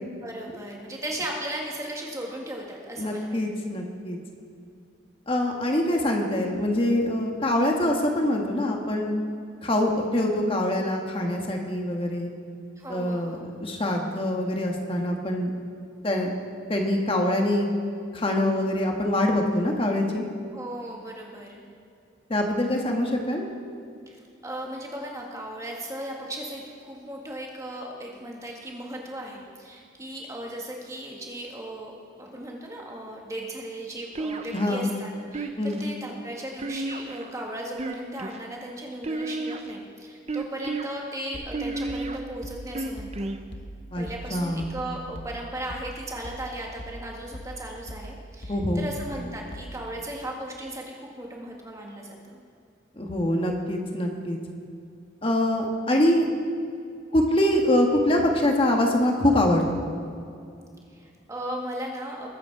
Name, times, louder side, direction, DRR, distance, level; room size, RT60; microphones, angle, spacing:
voice 1, 0.2-3.4 12.8-13.5 20.5-21.6 24.1-43.3 44.0-52.4 60.9-62.3, right 1 dB, 15° right, -1 dB, 1.8 m, -37 dB
voice 2, 3.0-4.2 5.3-9.1 9.6-12.3 12.9-15.5 16.0-16.3 16.7-17.7 18.1-20.3 22.3-23.5 34.5-34.9 35.6-35.8 43.9-44.0 44.3-44.7 48.5-48.9 53.0-54.4 55.2-56.3 57.1-59.9, left 1 dB, 30° left, 2 dB, 1.4 m, -24 dB
sound 1, 34.2-34.8 35.3-35.9 36.6-37.3 37.7-38.4 39.0-39.7 40.3-40.9 41.5-42.2 42.7-43.4, right 2 dB, 35° right, 0.7 m, -32 dB
sound 2, 41.3-50.0, equal, 60° left, 1.1 m, -42 dB
21.5 x 8.4 x 4.8 m, 2.4 s
head